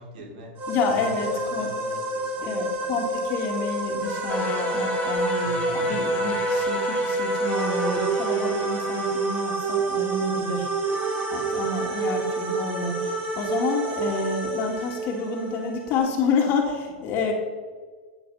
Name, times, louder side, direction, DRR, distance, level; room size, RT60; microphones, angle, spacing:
voice 1, 0.0-0.6 0.9-3.1 5.4-6.5, right 1 dB, 65° right, 2 dB, 2.7 m, -43 dB
sound 1, 0.6-16.0, right 2 dB, 35° right, 4.0 m, -28 dB
voice 2, 0.7-1.7 2.4-10.7 11.3-17.3, left 4 dB, 45° left, 1 dB, 2.4 m, -29 dB
sound 2, 4.3-9.5, left 6 dB, 25° left, 1.7 m, -35 dB
15.5 x 7.1 x 5.7 m, 1.5 s
hypercardioid pair, 120°, 5 cm